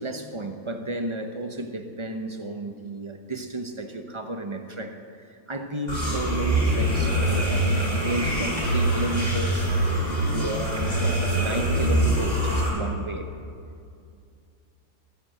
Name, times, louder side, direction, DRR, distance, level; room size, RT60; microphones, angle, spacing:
voice 1, 0.0-9.7 10.3-13.3, right 1 dB, 30° right, 6 dB, 0.6 m, -33 dB
sound 1, 5.9-12.7, right 1 dB, 25° left, 4.2 m, -24 dB
15.0 x 9.9 x 7.6 m, 2.4 s
omnidirectional pair, 1.7 m